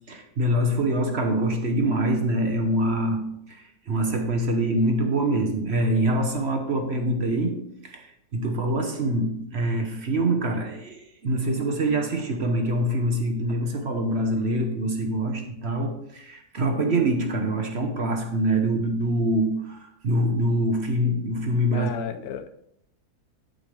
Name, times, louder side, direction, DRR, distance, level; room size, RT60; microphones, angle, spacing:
voice 1, 0.1-21.9 22.2-22.3, right 1 dB, 45° right, 4 dB, 1.1 m, -25 dB
voice 2, 21.5-22.5, left 8 dB, 70° left, 10 dB, 1.0 m, -34 dB
9.0 x 8.0 x 3.3 m, 0.76 s
omnidirectional pair, 1.7 m